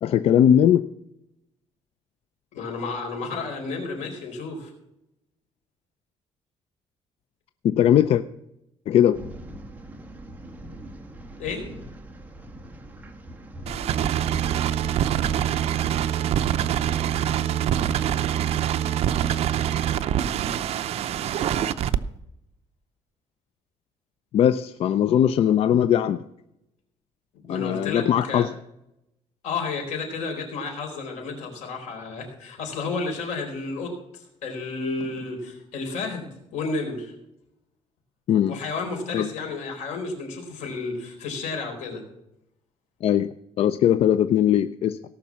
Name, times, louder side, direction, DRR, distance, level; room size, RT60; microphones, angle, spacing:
voice 1, 0.0-0.8 7.6-8.2 8.9-9.2 24.3-26.2 27.5-28.5 38.3-38.6 39.1-39.3 43.0-43.3 43.6-45.0, left 10 dB, 60° left, 13 dB, 0.5 m, -19 dB
voice 2, 2.5-4.7 11.4-11.6 27.3-28.5 29.4-37.1 38.5-42.0, left 4 dB, 90° left, 2 dB, 4.3 m, -32 dB
sound 1, 9.1-17.9, right 1 dB, 15° right, 1.3 m, -41 dB
sound 2, 13.7-22.0, right 10 dB, 65° right, 0.6 m, -24 dB
17.5 x 6.0 x 7.4 m, 0.84 s
cardioid pair, 135°, 11 cm